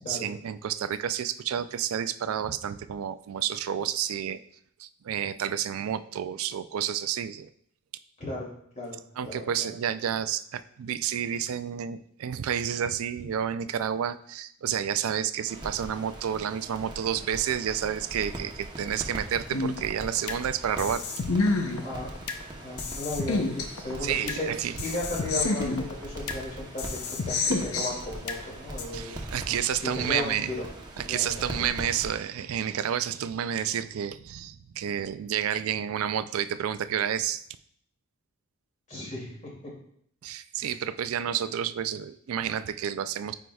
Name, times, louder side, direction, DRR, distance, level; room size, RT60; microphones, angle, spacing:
voice 1, 0.0-4.4 4.8-7.5 9.2-21.0 24.0-24.8 28.9-30.5 31.0-37.4 40.2-43.3, right 9 dB, 75° right, 12 dB, 0.4 m, -30 dB
voice 2, 8.2-8.5 8.8-9.0 9.2-9.7 21.8-22.1 22.6-24.4 24.8-29.2 29.8-30.6 31.0-31.4 38.9-39.5 40.6-40.7, left 2 dB, 35° left, -4 dB, 2.5 m, -35 dB
sound 1, 15.5-32.2, right 1 dB, 20° right, 0.9 m, -41 dB
sound 2, 19.5-20.4 20.8-22.4 22.8-24.4 24.8-26.4 26.8-28.4 28.8-28.9, left 3 dB, 90° left, 0.7 m, -29 dB
9.1 x 4.7 x 2.3 m, 0.66 s
head